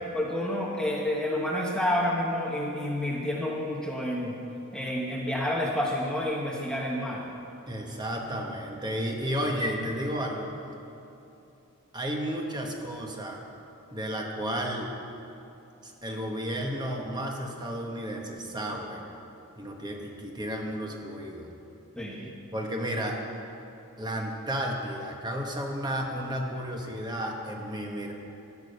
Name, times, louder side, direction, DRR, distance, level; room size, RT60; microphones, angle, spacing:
voice 1, 0.1-4.3 4.7-7.3 21.9-22.3, left 1 dB, 5° left, -2 dB, 1.0 m, -29 dB
voice 2, 7.7-10.5 11.9-13.4 13.9-14.9 15.8-19.0 19.6-21.5 22.5-23.2 24.0-28.1, equal, 20° right, 1 dB, 1.1 m, -32 dB
13.0 x 6.8 x 6.6 m, 2.8 s
head